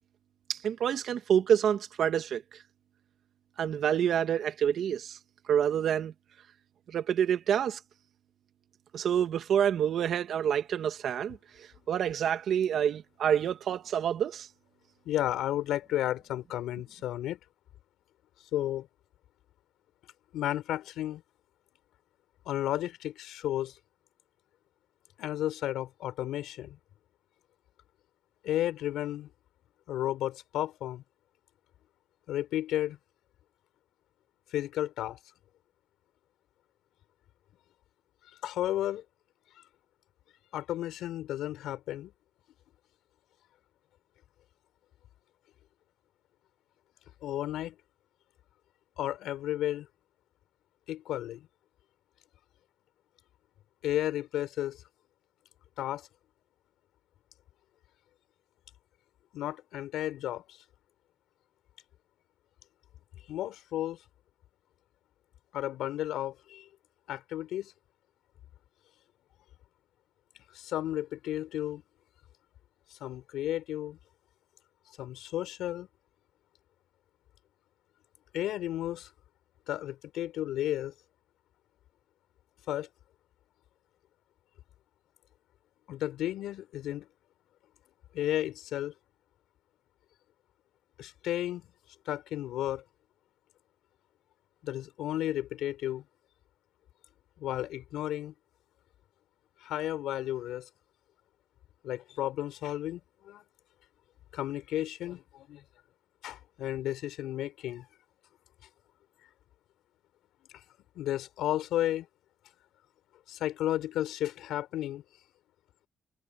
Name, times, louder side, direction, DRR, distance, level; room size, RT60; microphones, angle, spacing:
voice 1, 0.5-2.4 3.6-5.2 5.5-6.1 6.9-7.8 8.9-11.4 11.9-14.5, right 9 dB, 65° right, 1.9 m, -27 dB
voice 2, 15.0-17.4 18.5-18.9 20.3-21.2 22.4-23.8 25.2-26.8 28.4-29.3 29.9-31.0 32.3-33.0 34.5-35.2 38.4-39.0 40.5-42.1 47.2-47.7 49.0-49.9 50.9-51.5 53.8-54.8 55.8-56.1 59.3-60.6 63.3-64.0 65.5-66.7 67.1-67.7 70.5-71.8 72.9-74.0 75.0-75.9 78.3-79.1 79.7-80.9 82.7-82.9 85.9-87.1 88.1-88.9 91.0-91.6 92.0-92.8 94.6-96.0 97.4-98.3 99.6-100.7 101.8-103.4 104.3-105.6 106.2-107.8 110.9-112.1 113.3-115.0, left 13 dB, 85° left, 5.0 m, -33 dB
cardioid pair, 90°, 0 cm